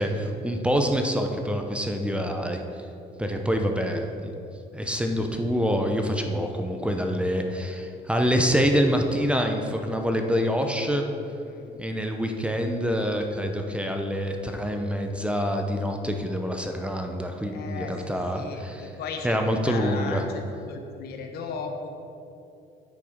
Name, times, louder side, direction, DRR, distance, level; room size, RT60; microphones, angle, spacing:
voice 1, 0.0-2.6 3.2-4.3 4.7-11.1 11.8-18.9 19.2-20.2, equal, 5° right, 4 dB, 0.7 m, -26 dB
voice 2, 11.4-11.9 17.5-19.4 19.6-21.9, left 5 dB, 70° left, 4 dB, 1.1 m, -36 dB
8.7 x 6.0 x 5.1 m, 2.7 s
cardioid pair, 110°, 17 cm